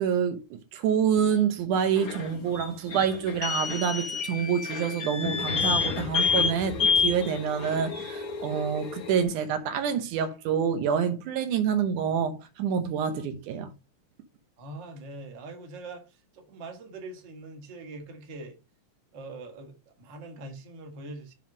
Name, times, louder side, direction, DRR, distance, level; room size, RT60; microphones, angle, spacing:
voice 1, 0.0-13.7, right 7 dB, 80° right, 2.4 m, -27 dB
sound 1, 2.0-9.2, left 5 dB, 75° left, 0.8 m, -29 dB
voice 2, 14.6-18.6 19.1-21.3, right 2 dB, 45° right, 1.9 m, -43 dB
7.7 x 3.6 x 5.9 m
omnidirectional pair, 3.5 m